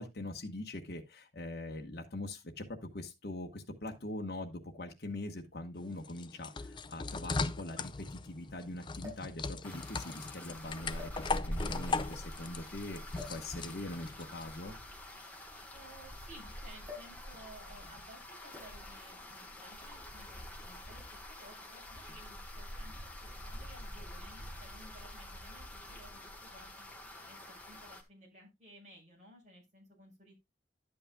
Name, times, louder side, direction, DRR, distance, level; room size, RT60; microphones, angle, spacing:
voice 1, 0.0-14.8, left 1 dB, 60° left, 1.2 m, -42 dB
sound 1, 5.3-5.4 6.5-6.6 6.8-6.9 9.0-9.4 10.2-10.4 10.9-11.6 13.1-13.5 14.6-16.2 16.8-17.2 17.5-17.8 18.5-18.9 19.9-20.1, left 4 dB, 25° right, 7.0 m, -50 dB
sound 2, 5.8-14.5, left 4 dB, 25° left, 0.4 m, -38 dB
sound 3, 9.6-28.0, left 1 dB, 10° left, 1.4 m, -46 dB
voice 2, 15.7-26.9 27.3-30.3, right 1 dB, 40° right, 5.4 m, -57 dB
11.5 x 8.5 x 2.3 m
head